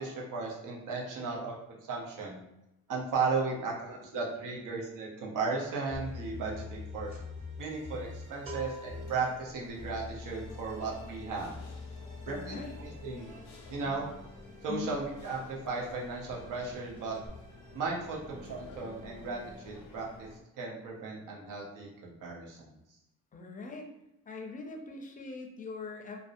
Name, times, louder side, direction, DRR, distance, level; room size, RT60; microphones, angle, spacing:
voice 1, 0.0-2.4 2.9-7.1 7.6-11.5 12.3-13.3 13.7-14.1 14.6-17.2 17.7-20.3 20.6-22.7, right 4 dB, 75° right, -2 dB, 0.7 m, -35 dB
sound 1, 5.9-9.3 9.7-15.3 15.7-19.6, left 3 dB, 25° right, 0.6 m, -46 dB
sound 2, 6.0-6.2 6.5-15.1 15.3-15.6 15.8-16.7 16.9-17.3, right 2 dB, 40° right, 1.3 m, -50 dB
sound 3, 8.8-20.4, left 2 dB, 90° left, 0.5 m, -52 dB
voice 2, 12.3-12.8 14.7-15.0 23.3-23.9 24.3-26.3, left 4 dB, 25° left, 2 dB, 0.4 m, -41 dB
2.5 x 2.0 x 2.5 m, 0.89 s
cardioid pair, 95°, 32 cm